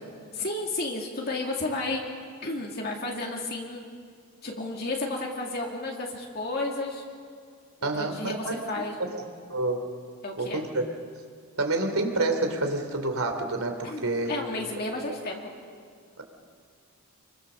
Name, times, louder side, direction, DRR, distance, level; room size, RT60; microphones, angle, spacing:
voice 1, 0.3-2.1 2.4-3.8 4.4-7.0 7.9-9.1 10.2-10.6 13.8-15.4, left 2 dB, 45° left, -1 dB, 2.4 m, -32 dB
voice 2, 7.8-8.6 9.5-9.8 10.4-10.8 11.6-14.3, right 2 dB, 75° right, 5 dB, 3.2 m, -28 dB
26.5 x 23.0 x 6.9 m, 2.1 s
head